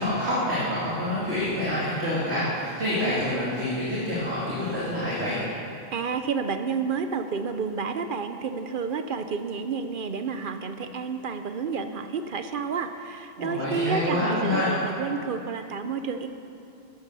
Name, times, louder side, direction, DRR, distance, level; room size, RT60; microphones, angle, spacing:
voice 1, 0.0-5.4 13.4-14.7, left 1 dB, 85° right, -9 dB, 3.1 m, -27 dB
voice 2, 5.9-16.3, right 5 dB, 55° right, 8 dB, 0.9 m, -30 dB
11.5 x 11.0 x 6.8 m, 2.6 s
omnidirectional pair, 1.1 m